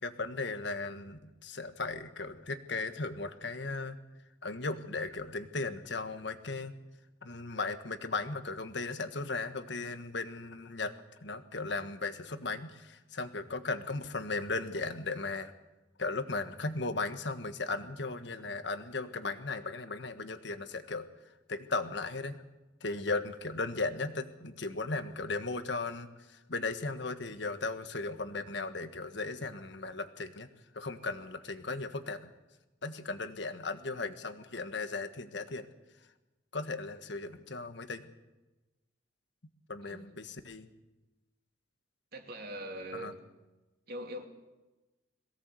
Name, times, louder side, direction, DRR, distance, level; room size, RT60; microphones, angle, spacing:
voice 1, 0.0-4.0 4.4-6.7 7.2-10.9 11.2-15.5 16.0-21.1 21.5-22.4 22.8-30.5 30.7-32.3 32.8-35.7 36.5-38.1 39.7-40.7 42.9-43.1, left 3 dB, 65° left, 9 dB, 1.5 m, -36 dB
voice 2, 42.1-43.2 43.9-44.2, right 1 dB, 55° right, 3 dB, 2.9 m, -42 dB
22.0 x 17.0 x 7.7 m, 1.1 s
head